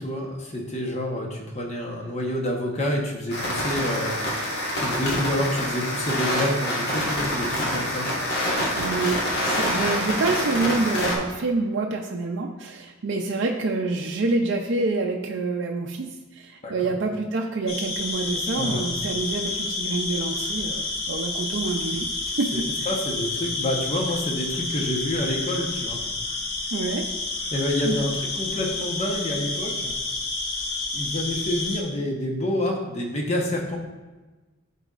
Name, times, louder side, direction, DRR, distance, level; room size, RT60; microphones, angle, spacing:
voice 1, 0.0-4.1 4.7-8.1 16.6-16.7 18.6-18.8 22.5-26.0 27.5-29.9 30.9-33.8, left 1 dB, 30° left, 0 dB, 1.0 m, -28 dB
sound 1, 3.3-11.2, equal, 50° left, 1.4 m, -26 dB
voice 2, 8.7-22.1 22.4-22.9 26.7-27.1 27.8-28.0, right 3 dB, 60° right, 1 dB, 0.5 m, -27 dB
sound 2, 17.7-31.8, left 3 dB, 80° left, 1.0 m, -30 dB
11.5 x 4.1 x 2.5 m, 1.2 s
head